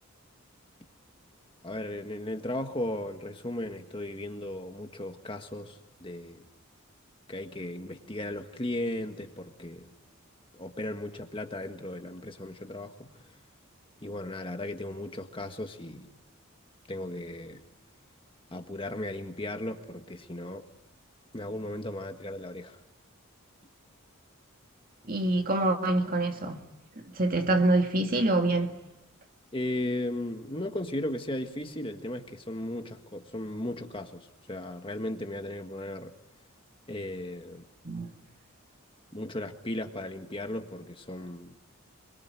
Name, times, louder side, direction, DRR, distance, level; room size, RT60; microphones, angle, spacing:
voice 1, 1.6-6.4 7.3-9.9 10.5-13.1 14.0-16.1 16.9-17.6 18.5-20.6 21.3-22.8 29.5-36.1 36.9-37.7 39.1-41.6, left 1 dB, 25° left, 1.7 m, -36 dB
voice 2, 25.1-26.6 27.1-28.7 37.8-38.1, right 2 dB, 40° right, 2.2 m, -25 dB
26.0 x 23.5 x 9.7 m
head